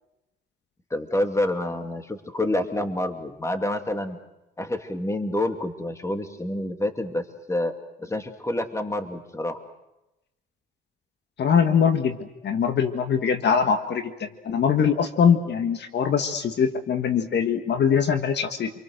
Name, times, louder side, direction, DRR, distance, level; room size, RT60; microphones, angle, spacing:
voice 1, 0.9-4.2 4.6-7.7 8.0-9.6, left 1 dB, 15° left, 6 dB, 2.6 m, -28 dB
voice 2, 11.4-12.2 12.4-18.7, left 7 dB, 60° left, 7 dB, 1.7 m, -22 dB
28.0 x 23.5 x 6.6 m, 0.95 s
cardioid pair, 90°, 20 cm